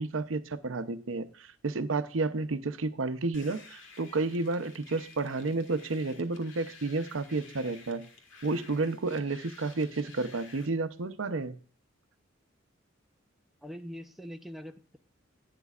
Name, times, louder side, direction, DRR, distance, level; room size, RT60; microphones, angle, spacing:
voice 1, 0.0-8.1 8.4-11.6, right 3 dB, 90° right, 0.7 m, -31 dB
sound 1, 3.3-10.7, left 4 dB, 75° left, 1.7 m, -53 dB
voice 2, 13.6-15.0, equal, ahead, 0.6 m, -43 dB
12.5 x 9.0 x 2.4 m
head